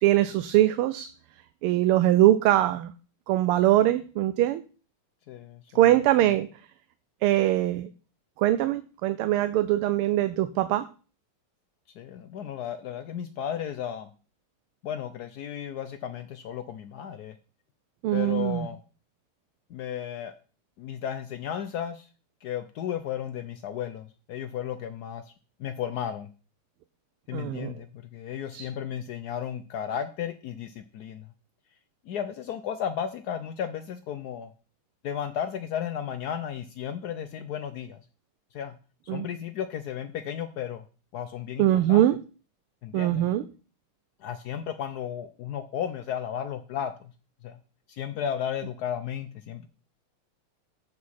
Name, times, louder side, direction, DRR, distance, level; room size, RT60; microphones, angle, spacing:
voice 1, 0.0-1.1 1.6-2.9 3.3-4.6 5.7-6.5 7.2-7.9 8.4-10.9 18.0-18.7 27.3-27.7 28.5-28.6 39.1-39.3 41.6-42.2 42.9-43.4, right 14 dB, 85° right, 12 dB, 1.5 m, -22 dB
voice 2, 5.3-5.8 11.9-14.1 14.8-17.3 18.1-18.8 19.7-20.3 20.8-22.1 22.4-25.3 25.6-26.3 27.3-31.3 32.0-34.5 35.0-38.0 38.5-38.7 39.0-40.8 41.1-42.1 42.8-43.3 44.2-47.1 47.4-47.6 47.9-49.7, left 9 dB, 90° left, 10 dB, 0.8 m, -34 dB
14.0 x 4.8 x 4.2 m, 0.37 s
omnidirectional pair, 2.4 m